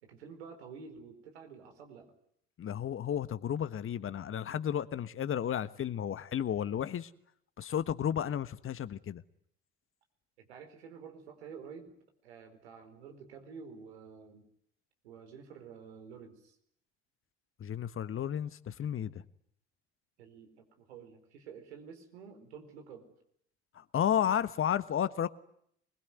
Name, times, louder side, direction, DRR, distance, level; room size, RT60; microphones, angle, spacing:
voice 1, 0.0-2.1 10.4-12.0 12.2-14.4 15.0-16.5 20.2-23.1, right 6 dB, 80° right, 5 dB, 4.7 m, -50 dB
voice 2, 2.6-7.1 7.6-9.2 17.6-19.2 23.7-25.3, left 9 dB, 40° left, 14 dB, 1.4 m, -32 dB
24.5 x 21.5 x 9.5 m, 0.69 s
hypercardioid pair, 60°, 32 cm